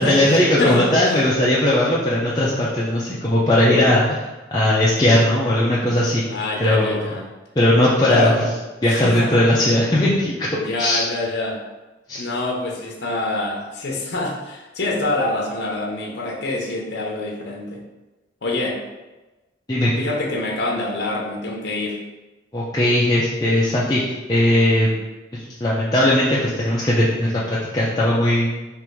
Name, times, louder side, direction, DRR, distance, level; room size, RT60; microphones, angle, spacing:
voice 1, 0.0-4.2 4.5-6.2 6.6-7.1 7.6-8.5 8.8-10.5 10.8-11.0 12.1-12.2 19.7-19.9 22.5-24.9 25.3-28.6, left 1 dB, 20° left, -8 dB, 0.5 m, -18 dB
voice 2, 6.3-7.2 8.1-8.4 8.8-9.3 10.5-11.6 12.2-17.8 18.4-18.8 20.0-22.0, left 2 dB, 65° left, -1 dB, 0.7 m, -25 dB
3.5 x 2.5 x 4.5 m, 1.1 s
head